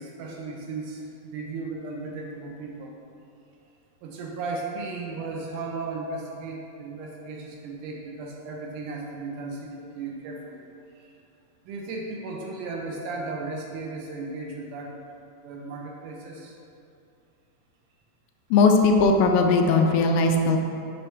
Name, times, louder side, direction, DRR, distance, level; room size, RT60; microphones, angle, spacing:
voice 1, 0.0-2.9 4.0-10.7 11.0-11.2 11.7-15.1 15.4-16.6, right 3 dB, 80° right, -1 dB, 2.0 m, -35 dB
voice 2, 18.5-20.6, left 3 dB, 85° left, 3 dB, 2.2 m, -19 dB
8.0 x 3.3 x 4.5 m, 2.6 s
omnidirectional pair, 3.9 m